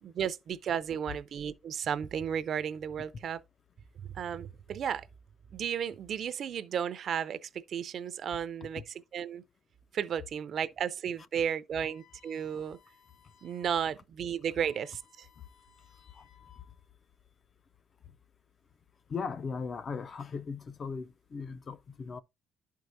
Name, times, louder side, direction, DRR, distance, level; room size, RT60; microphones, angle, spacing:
voice 1, 0.0-3.4 4.0-5.1 5.5-8.8 9.1-9.4 9.9-12.8 13.4-15.3, right 8 dB, 50° right, 0.5 m, -34 dB
sound 1, 11.8-13.8 14.2-14.3 14.5-16.9, left 8 dB, 90° left, 2.5 m, -62 dB
voice 2, 19.1-22.2, left 5 dB, 35° left, 0.4 m, -38 dB
11.5 x 4.6 x 2.6 m
cardioid pair, 155°, 0 cm